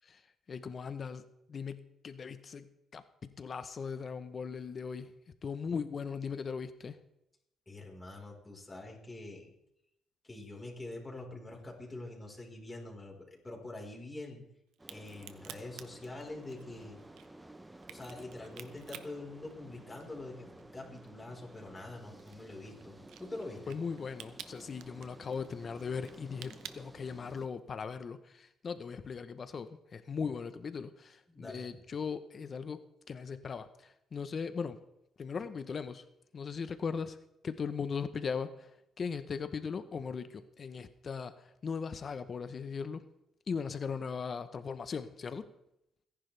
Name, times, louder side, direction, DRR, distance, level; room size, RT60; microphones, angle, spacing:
voice 1, 0.5-5.1 5.4-7.0 23.7-32.8 33.1-34.8 35.2-36.0 36.3-37.2 37.4-38.7 39.0-43.0 43.5-45.5, left 5 dB, 45° left, 11 dB, 0.9 m, -39 dB
voice 2, 7.7-9.5 10.2-14.4 14.9-17.0 17.9-23.8 31.3-31.7, left 2 dB, 15° left, -1 dB, 4.4 m, -45 dB
Crack, 14.7-20.2 20.6-27.6, right 10 dB, 85° right, 0.9 m, -51 dB
sound 1, 14.8-27.5, right 1 dB, 10° right, 0.9 m, -54 dB
28.5 x 10.5 x 3.4 m, 0.81 s
cardioid pair, 90°, 0 cm